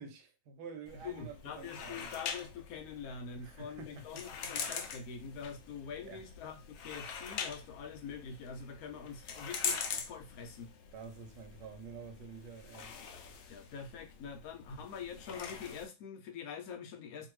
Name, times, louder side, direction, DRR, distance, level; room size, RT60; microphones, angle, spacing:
voice 1, 0.0-2.1 3.4-4.2 6.0-6.2 10.9-12.9, right 5 dB, 90° right, 1.2 m, -49 dB
sound 1, 0.9-15.9, left 6 dB, 90° left, 0.5 m, -43 dB
voice 2, 1.0-10.7 13.5-17.3, left 6 dB, 70° left, 1.0 m, -45 dB
2.7 x 2.5 x 3.1 m
omnidirectional pair, 1.7 m